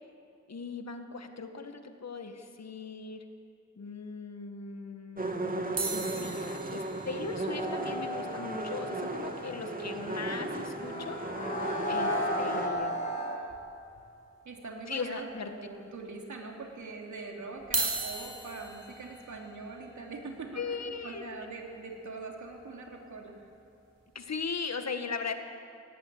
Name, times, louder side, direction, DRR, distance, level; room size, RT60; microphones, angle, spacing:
voice 1, 0.5-3.3 3.8-11.2 11.9-13.0 14.9-15.5 20.6-21.2 24.1-25.3, left 5 dB, 65° left, 6 dB, 1.9 m, -39 dB
sound 1, 5.2-12.7, right 2 dB, 30° right, 2.4 m, -36 dB
sound 2, 5.8-10.1 10.4-10.5 10.7-10.8 11.2-11.4 12.7-12.8 13.5-14.0 14.5-14.6 15.5-15.6 17.6-23.7 24.2-24.5, right 4 dB, 65° right, 5.5 m, -39 dB
sound 3, 7.5-13.4, equal, 25° left, 6.5 m, -35 dB
voice 2, 14.4-23.5, right 3 dB, 80° right, 1 dB, 3.3 m, -43 dB
17.0 x 16.0 x 9.9 m, 2.6 s
cardioid pair, 55°, 29 cm